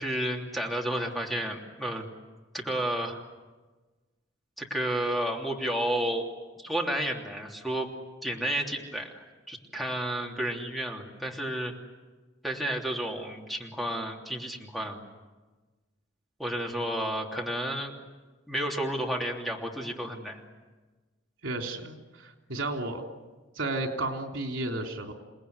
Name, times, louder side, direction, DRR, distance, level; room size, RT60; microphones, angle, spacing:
voice 1, 0.0-2.1 2.5-3.2 4.6-6.3 6.6-7.9 8.2-11.7 12.4-15.0 16.4-17.9 18.5-20.4, right 1 dB, ahead, 0 dB, 3.1 m, -31 dB
voice 2, 21.4-23.0 23.6-25.1, right 2 dB, 80° right, 3 dB, 3.5 m, -33 dB
29.5 x 19.5 x 9.7 m, 1.2 s
head